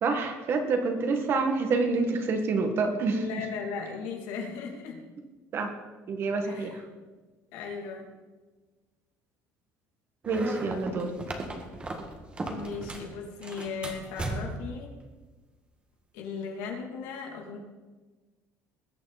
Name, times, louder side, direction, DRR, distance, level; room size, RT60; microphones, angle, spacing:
voice 1, 0.0-3.2 5.5-5.7 6.1-6.8 10.3-11.1, right 4 dB, 40° right, 5 dB, 1.9 m, -27 dB
voice 2, 3.1-5.0 6.4-6.8 7.5-8.1 12.5-14.9 16.1-17.6, left 5 dB, 80° left, 1 dB, 2.9 m, -37 dB
sound 1, 10.2-13.1 13.4-14.7, right 2 dB, 20° right, 1.7 m, -36 dB
20.5 x 8.4 x 4.3 m, 1.3 s
cardioid pair, 150°, 6 cm